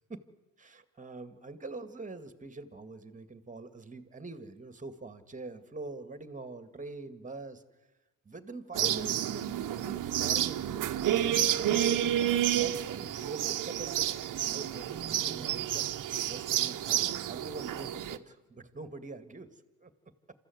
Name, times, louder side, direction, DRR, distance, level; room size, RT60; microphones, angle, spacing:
voice 1, 0.6-7.6 8.3-11.0 11.5-14.1 14.4-15.9 16.3-19.5 19.8-19.9, right 3 dB, 20° right, 10 dB, 2.1 m, -44 dB
sound 1, 8.7-18.2, right 11 dB, 55° right, 1.2 m, -30 dB
27.0 x 14.5 x 8.0 m, 1.2 s
supercardioid pair, 80°, 39 cm